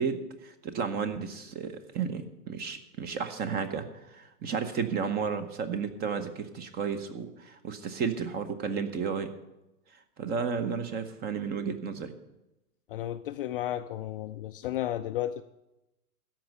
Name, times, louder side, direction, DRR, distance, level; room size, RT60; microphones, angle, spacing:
voice 1, 0.0-9.3 10.2-12.1, right 6 dB, 20° right, 11 dB, 0.9 m, -33 dB
voice 2, 12.9-15.4, left 12 dB, 40° left, 8 dB, 0.4 m, -33 dB
13.5 x 5.3 x 9.0 m, 0.92 s
hypercardioid pair, 125°, 45 cm